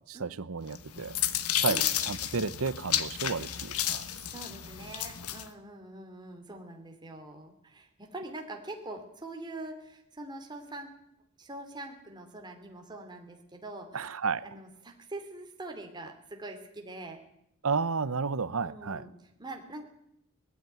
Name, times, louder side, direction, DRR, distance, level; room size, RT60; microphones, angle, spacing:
voice 1, 0.1-1.2 1.6-4.0 13.9-14.4 17.6-19.0, right 5 dB, 70° right, 16 dB, 0.8 m, -32 dB
sound 1, 0.7-5.5, left 11 dB, 85° left, 1.3 m, -32 dB
voice 2, 4.3-10.9 11.4-14.1 14.4-17.2 18.6-19.9, right 2 dB, 20° right, 3 dB, 2.8 m, -44 dB
20.0 x 15.0 x 9.3 m, 0.76 s
head